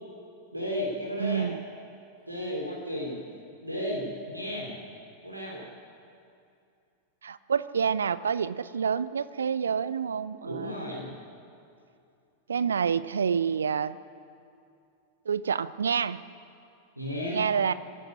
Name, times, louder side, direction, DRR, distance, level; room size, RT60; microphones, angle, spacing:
voice 1, 0.5-1.5 2.3-3.2 3.6-4.7 5.2-5.6 10.4-11.1 17.0-17.4, equal, 85° right, -2 dB, 3.3 m, -33 dB
voice 2, 1.2-1.6 7.2-11.2 12.5-14.0 15.3-16.2 17.3-17.7, right 7 dB, 70° right, 17 dB, 0.6 m, -28 dB
26.0 x 12.0 x 10.0 m, 2.5 s
figure-of-eight pair, 90°, 0 cm